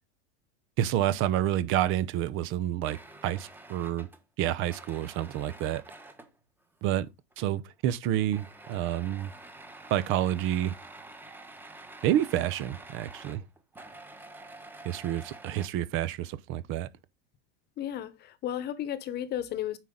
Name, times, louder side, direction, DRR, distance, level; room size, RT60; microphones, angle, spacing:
voice 1, 0.8-3.0 3.2-4.1 4.4-5.8 6.8-7.1 7.4-9.3 9.9-10.7 12.0-13.4 14.8-16.9, right 12 dB, 45° right, 0.8 m, -28 dB
sound 1, 2.8-6.4 7.3-7.7 8.0-15.7, right 2 dB, 5° right, 1.2 m, -48 dB
voice 2, 17.8-19.8, left 11 dB, 35° left, 1.1 m, -34 dB
9.2 x 5.9 x 3.8 m
supercardioid pair, 145°, 30 cm